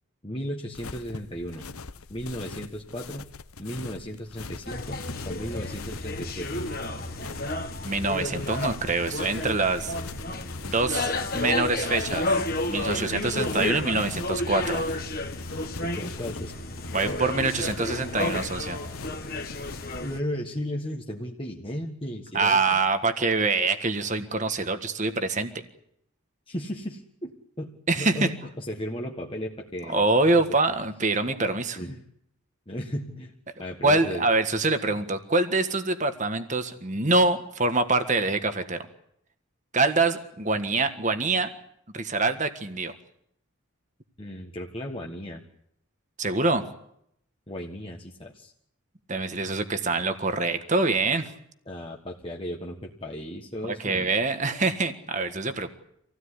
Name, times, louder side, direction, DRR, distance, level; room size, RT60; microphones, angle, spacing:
voice 1, 0.2-1.7 2.1-3.3 3.6-6.6 15.8-16.5 20.0-22.8 26.5-27.3 27.6-27.7 28.0-30.0 31.7-32.0 32.7-33.3 33.6-34.3 44.2-45.4 47.5-48.5 51.7-54.1, equal, 25° left, 0 dB, 1.6 m, -35 dB
sound 1, 0.7-20.0, left 4 dB, 85° left, 1.1 m, -42 dB
sound 2, 4.7-20.2, left 2 dB, 45° left, 1.8 m, -31 dB
voice 2, 7.8-9.9 10.7-12.3 12.7-14.9 16.9-18.8 22.3-25.5 27.9-28.3 29.9-31.8 33.8-38.8 39.7-41.5 41.9-42.9 46.2-46.6 49.1-51.3 53.6-55.7, right 3 dB, 35° right, 9 dB, 1.7 m, -25 dB
26.5 x 17.0 x 9.9 m, 0.74 s
head